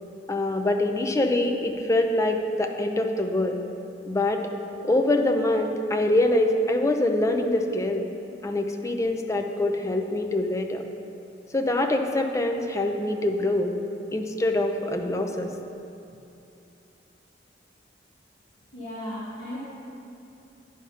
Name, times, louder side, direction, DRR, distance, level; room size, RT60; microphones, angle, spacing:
voice 1, 0.3-3.6 4.1-4.5 4.8-8.1 8.4-10.8 11.5-13.7 14.1-15.5, left 1 dB, 15° left, 4 dB, 0.5 m, -24 dB
voice 2, 18.7-19.6, left 1 dB, 35° left, -10 dB, 1.8 m, -35 dB
9.8 x 5.0 x 5.5 m, 2.7 s
head